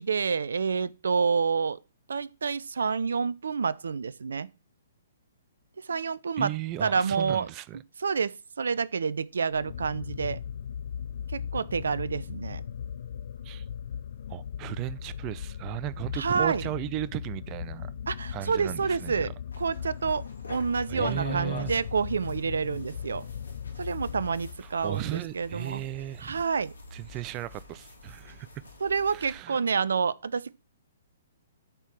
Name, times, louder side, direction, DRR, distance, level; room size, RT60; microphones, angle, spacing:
voice 1, 0.0-1.8 2.1-4.5 5.9-6.5 6.8-7.5 8.0-10.4 11.3-12.6 16.2-16.6 18.1-19.3 19.6-20.2 20.5-23.2 23.8-25.8 26.2-26.7 28.8-30.5, right 5 dB, 70° right, 0.6 m, -28 dB
voice 2, 6.4-7.8 13.4-13.6 14.3-18.0 18.3-19.3 20.9-21.8 24.6-26.4 26.9-28.5 29.1-29.6, right 14 dB, 30° right, 0.6 m, -35 dB
sound 1, 9.5-24.9, left 8 dB, 60° left, 0.4 m, -38 dB
sound 2, 19.5-29.4, left 3 dB, 85° left, 3.6 m, -44 dB
12.0 x 4.7 x 6.0 m
figure-of-eight pair, 125°, 0 cm